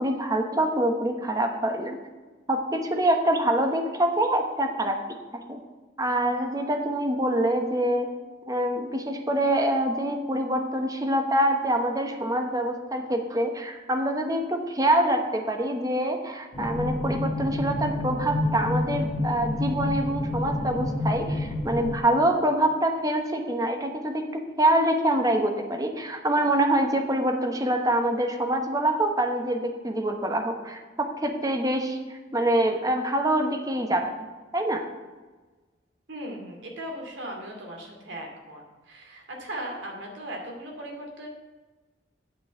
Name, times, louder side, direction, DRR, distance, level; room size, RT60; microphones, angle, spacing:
voice 1, 0.0-2.0 2.5-5.0 5.5-5.6 6.0-8.1 8.5-34.1 34.5-34.8, right 1 dB, 20° right, 4 dB, 1.0 m, -25 dB
sound 1, 16.5-22.0, left 1 dB, 25° left, 1.1 m, -29 dB
voice 2, 36.1-41.3, right 1 dB, 70° right, 0 dB, 2.5 m, -38 dB
9.0 x 5.5 x 8.0 m, 1.2 s
head